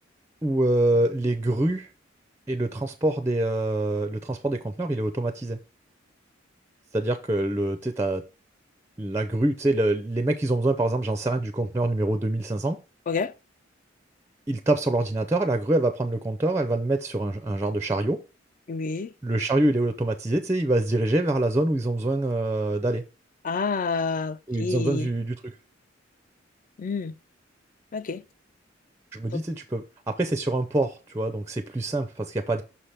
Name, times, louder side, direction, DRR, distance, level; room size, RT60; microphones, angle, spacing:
voice 1, 0.4-1.9 2.5-5.6 6.9-8.2 9.0-12.8 14.5-18.2 19.2-23.0 24.5-25.5 29.1-32.6, right 2 dB, 15° right, 0.4 m, -25 dB
voice 2, 18.7-19.1 23.4-25.1 26.8-27.1 27.9-28.2 29.3-29.4, left 4 dB, 45° left, 0.4 m, -28 dB
5.7 x 3.3 x 5.6 m
head